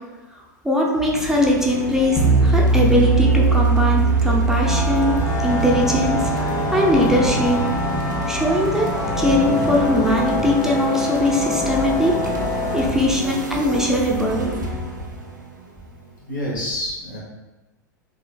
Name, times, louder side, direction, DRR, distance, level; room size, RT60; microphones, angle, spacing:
voice 1, 0.3-5.2 5.4-7.6 8.3-12.2 12.7-14.5, left 1 dB, 5° right, -2 dB, 0.5 m, -21 dB
sound 1, 0.9-16.4, right 2 dB, 85° right, 0.4 m, -30 dB
sound 2, 2.2-7.5, right 3 dB, 25° left, 1.1 m, -20 dB
sound 3, 4.6-12.9, left 2 dB, 50° left, 1.0 m, -25 dB
voice 2, 12.9-13.2 15.0-15.1 16.3-17.2, left 1 dB, 80° left, -5 dB, 1.1 m, -28 dB
3.8 x 2.6 x 2.3 m, 1.1 s
figure-of-eight pair, 90°, 10 cm